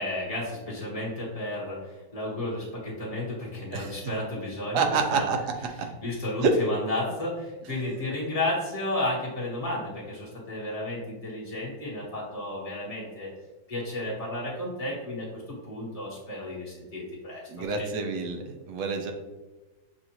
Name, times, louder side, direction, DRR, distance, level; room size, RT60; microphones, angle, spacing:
voice 1, 0.0-5.3 5.8-13.3 13.7-17.9, left 1 dB, 25° left, -5 dB, 1.0 m, -33 dB
voice 2, 4.7-5.4 6.4-6.6 17.5-19.1, right 4 dB, 70° right, 4 dB, 1.1 m, -27 dB
6.7 x 2.4 x 2.9 m, 1.1 s
omnidirectional pair, 2.1 m